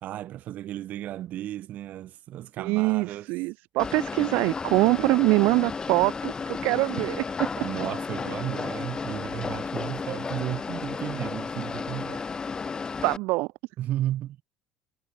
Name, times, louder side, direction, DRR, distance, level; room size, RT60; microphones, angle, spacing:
voice 1, 0.0-3.3 7.6-12.2 13.8-14.4, right 13 dB, 60° right, 1.9 m, -34 dB
voice 2, 2.6-7.2 13.0-13.5, right 23 dB, 75° right, 0.5 m, -24 dB
sound 1, 3.8-13.2, left 5 dB, 25° left, 0.9 m, -33 dB
supercardioid pair, 95°, 3 cm